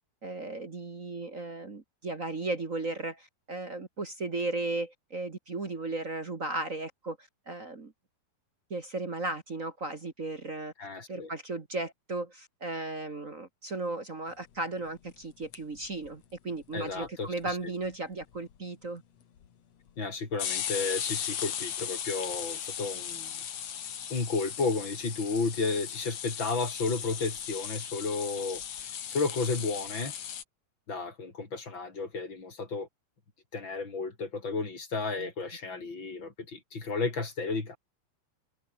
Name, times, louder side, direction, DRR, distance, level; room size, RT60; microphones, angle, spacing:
voice 1, 0.2-7.9 8.7-10.7 11.1-19.0 35.2-35.3, right 2 dB, 35° right, 1.3 m, -35 dB
voice 2, 10.8-11.3 16.7-17.6 20.0-23.3 24.1-28.6 29.1-30.1 30.9-32.9 33.5-37.8, left 4 dB, 30° left, 4.8 m, -32 dB
sound 1, 15.2-16.1 16.4-16.5 16.6-16.7 16.9-17.5 17.8-17.9 18.2-18.5 19.4-19.5 20.3-30.4, left 9 dB, 50° left, 2.7 m, -37 dB
omnidirectional pair, 4.2 m